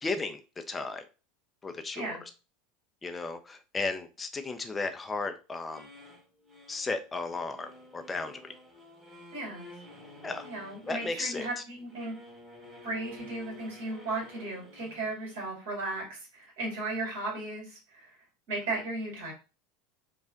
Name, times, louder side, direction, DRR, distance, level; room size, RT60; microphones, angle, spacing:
voice 1, 0.0-1.0 1.6-2.2 3.0-5.9 6.7-8.5 10.2-10.5 10.9-11.6, left 3 dB, 20° left, 0.6 m, -35 dB
sound 1, 5.7-15.4, left 2 dB, 20° right, 1.8 m, -51 dB
voice 2, 9.3-9.6 10.4-12.1 12.8-18.1 18.5-19.3, right 2 dB, 55° right, 2.3 m, -35 dB
4.9 x 2.4 x 3.8 m
figure-of-eight pair, 75°, 0 cm